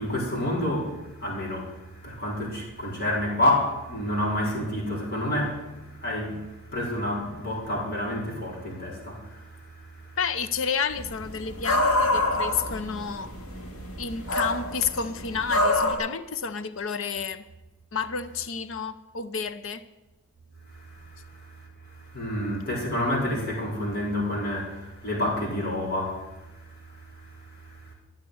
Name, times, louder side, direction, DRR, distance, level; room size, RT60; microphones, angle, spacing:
voice 1, 0.0-10.1 20.8-26.5 26.8-27.9, left 1 dB, 50° left, 4.6 m, -29 dB
voice 2, 10.2-13.3 14.0-17.4 17.9-19.8, left 6 dB, 65° left, 0.7 m, -30 dB
sound 1, 10.9-15.9, left 2 dB, 80° left, 2.4 m, -27 dB
14.0 x 7.4 x 9.7 m
head